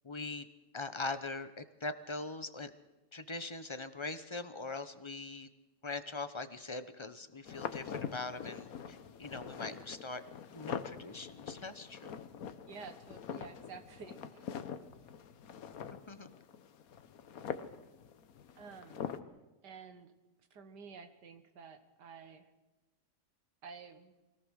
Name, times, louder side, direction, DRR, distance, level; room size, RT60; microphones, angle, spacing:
voice 1, 0.0-0.5 0.7-2.7 3.1-5.5 5.8-10.2 10.5-12.3 16.1-16.3, left 3 dB, 30° left, 11 dB, 0.6 m, -42 dB
sound 1, 7.5-19.2, left 7 dB, 60° left, 1.3 m, -44 dB
voice 2, 12.7-14.5 18.6-19.1 19.6-20.1 20.5-22.5 23.6-24.1, right 5 dB, 75° right, 9 dB, 2.1 m, -51 dB
23.5 x 17.5 x 6.4 m, 1.1 s
omnidirectional pair, 1.8 m